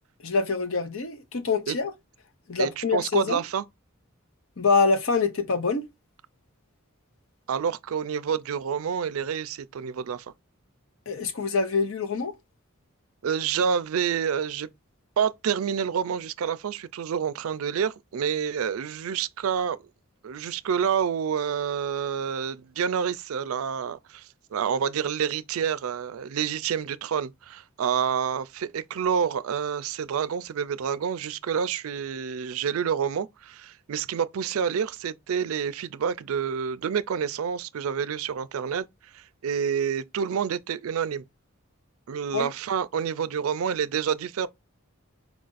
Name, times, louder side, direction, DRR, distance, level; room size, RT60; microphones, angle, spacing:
voice 1, 0.2-1.9 2.5-3.4 4.6-5.9 11.1-12.3 42.3-42.5, left 4 dB, 70° left, 0.8 m, -25 dB
voice 2, 2.6-3.6 7.5-10.3 13.2-14.7 15.2-19.8 20.2-38.8 39.1-41.2 42.1-44.5, right 7 dB, 75° right, 0.4 m, -28 dB
4.7 x 2.5 x 3.9 m
head